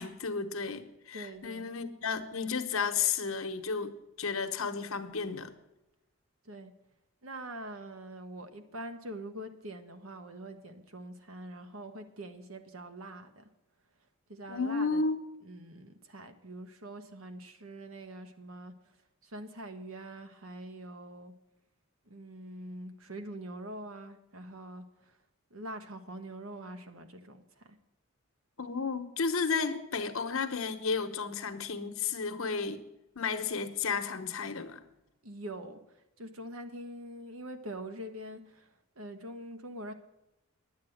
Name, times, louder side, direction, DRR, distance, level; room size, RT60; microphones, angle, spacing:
voice 1, 0.0-5.5 14.5-15.2 28.6-32.8 33.1-34.8, left 5 dB, 75° left, 8 dB, 1.1 m, -33 dB
voice 2, 1.1-1.7 6.4-6.7 7.2-13.5 14.3-15.1 15.4-18.7 19.2-21.3 22.1-25.2 25.5-27.8 35.2-39.9, right 1 dB, 75° right, 8 dB, 1.3 m, -44 dB
10.5 x 8.5 x 7.8 m, 0.91 s
head